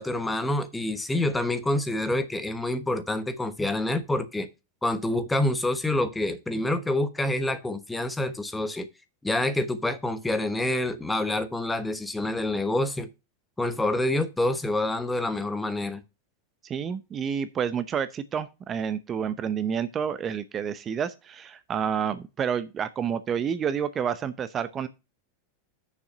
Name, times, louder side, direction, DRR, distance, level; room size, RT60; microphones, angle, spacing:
voice 1, 0.0-4.5 4.8-8.9 9.2-13.1 13.6-16.0, left 1 dB, 10° left, 1.1 m, -27 dB
voice 2, 16.6-24.9, right 7 dB, 30° right, 0.8 m, -29 dB
6.8 x 5.6 x 6.7 m
hypercardioid pair, 95°, 0 cm